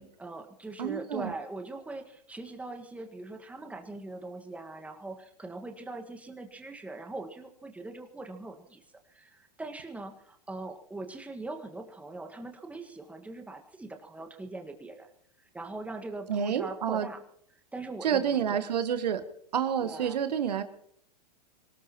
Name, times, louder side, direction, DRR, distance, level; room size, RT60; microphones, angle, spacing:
voice 1, 0.2-15.1 15.4-17.2 17.7-18.6 19.8-20.2, right 2 dB, 5° right, 5 dB, 1.8 m, -41 dB
voice 2, 0.8-1.3 16.3-17.1 18.0-19.2 19.5-20.6, right 8 dB, 75° right, 10 dB, 1.4 m, -28 dB
25.5 x 17.5 x 3.0 m, 0.67 s
hypercardioid pair, 105°, 21 cm